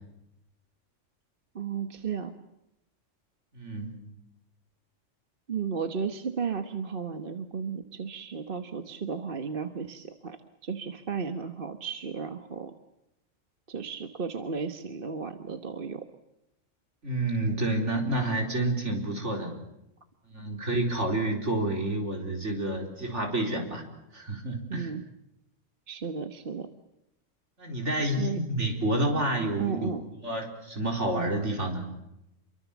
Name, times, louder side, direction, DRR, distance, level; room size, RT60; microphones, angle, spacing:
voice 1, 1.5-2.3 5.5-12.7 13.7-16.1 24.7-25.0 25.9-26.7 28.0-28.4 29.6-30.1, right 6 dB, 45° right, 8 dB, 1.4 m, -34 dB
voice 2, 3.6-3.9 17.0-19.5 20.3-23.8 24.1-24.9 27.6-29.9 30.2-31.8, right 1 dB, 65° right, 2 dB, 4.8 m, -29 dB
28.0 x 23.5 x 7.2 m, 0.86 s
omnidirectional pair, 1.3 m